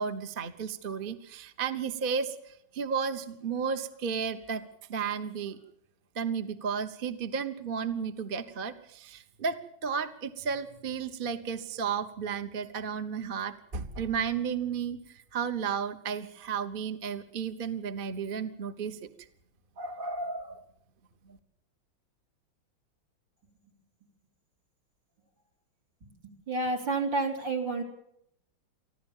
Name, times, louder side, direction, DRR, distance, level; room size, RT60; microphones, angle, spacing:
voice 1, 0.0-2.3 2.7-4.6 4.9-5.6 6.2-9.6 9.8-15.0 15.3-19.0 19.8-20.6, right 6 dB, 35° right, 9 dB, 1.0 m, -33 dB
voice 2, 26.5-27.8, right 3 dB, 60° right, 2 dB, 4.3 m, -29 dB
24.5 x 15.0 x 7.3 m, 0.74 s
omnidirectional pair, 2.2 m